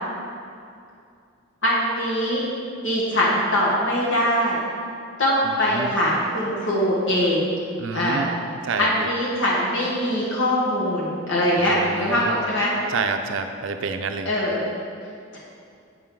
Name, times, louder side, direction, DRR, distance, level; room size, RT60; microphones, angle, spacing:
voice 1, 1.6-2.4 2.8-4.6 5.2-7.5 7.9-8.3 8.8-12.7 14.2-14.6 15.3-15.4, equal, 60° left, -5 dB, 1.2 m, -22 dB
voice 2, 5.4-5.9 7.8-8.3 8.6-9.1 11.6-12.3 12.9-14.3, right 4 dB, 70° right, 7 dB, 0.5 m, -29 dB
7.5 x 6.0 x 3.7 m, 2.4 s
head